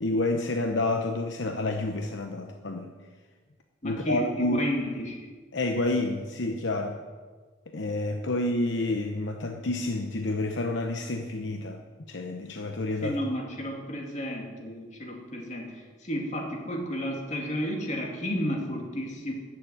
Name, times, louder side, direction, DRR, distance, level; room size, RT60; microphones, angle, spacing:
voice 1, 0.0-2.9 3.8-4.6 5.5-7.0 7.7-11.8 12.1-13.2, left 2 dB, 65° left, 4 dB, 0.9 m, -29 dB
voice 2, 3.8-5.2 13.0-15.7 16.0-19.3, equal, 35° left, 0 dB, 2.6 m, -32 dB
13.5 x 7.2 x 9.0 m, 1.5 s
head